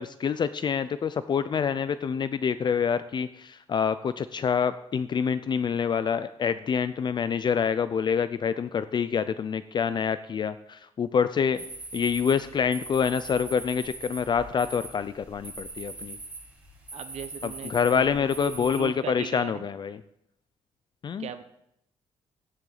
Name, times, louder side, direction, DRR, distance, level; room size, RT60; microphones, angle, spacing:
voice 1, 0.0-11.6 11.9-16.2 17.4-20.0 21.0-21.3, left 7 dB, 40° left, 13 dB, 0.5 m, -27 dB
sound 1, 11.5-18.8, right 2 dB, 10° right, 4.4 m, -41 dB
voice 2, 16.9-19.7 21.2-21.4, right 9 dB, 75° right, 11 dB, 0.8 m, -38 dB
14.5 x 10.5 x 4.0 m, 0.77 s
cardioid pair, 110°, 11 cm